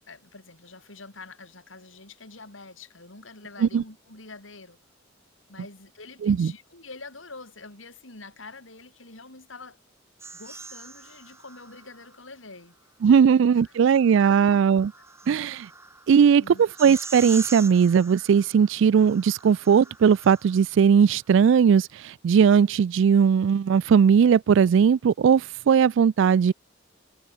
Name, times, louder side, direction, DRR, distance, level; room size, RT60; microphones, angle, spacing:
voice 1, 0.1-4.8 5.5-9.8 10.3-12.8 13.2-13.3 13.6-14.5 15.4-15.6 16.3-16.6, left 3 dB, 80° left, 5.7 m, -46 dB
voice 2, 6.2-6.5 13.0-14.9 15.3-15.7 16.1-26.5, right 7 dB, 70° right, 0.3 m, -19 dB
sound 1, 10.2-12.2 13.6-20.8, right 4 dB, 15° right, 1.6 m, -42 dB
head